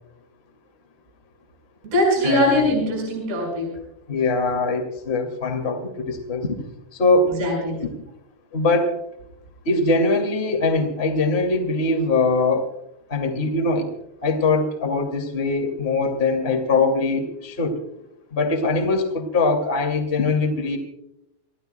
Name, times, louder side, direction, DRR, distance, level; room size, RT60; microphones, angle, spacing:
voice 1, 1.8-3.8 7.3-7.8, left 1 dB, 65° right, -3 dB, 7.9 m, -21 dB
voice 2, 4.1-6.5 6.9-7.3 8.5-9.0 9.6-12.7 13.1-13.9 14.2-17.8 18.3-20.8, left 3 dB, 25° left, 3 dB, 1.4 m, -22 dB
30.0 x 16.5 x 2.3 m, 0.83 s
omnidirectional pair, 5.2 m